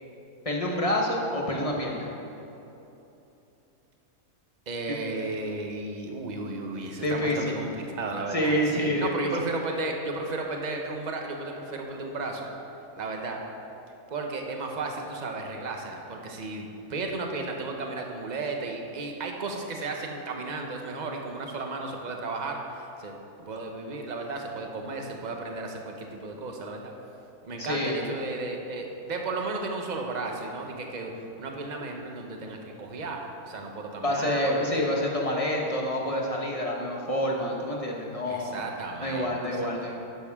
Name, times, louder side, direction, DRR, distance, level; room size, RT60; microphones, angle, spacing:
voice 1, 0.4-2.1 7.0-7.5 8.3-9.3 27.6-28.1 34.0-38.6 39.0-39.9, left 1 dB, 25° left, -1 dB, 1.2 m, -27 dB
voice 2, 4.7-12.5 13.0-13.4 14.1-26.9 27.4-34.9 38.3-39.7, right 3 dB, 35° right, 2 dB, 1.0 m, -34 dB
12.0 x 10.0 x 3.7 m, 2.9 s
omnidirectional pair, 1.6 m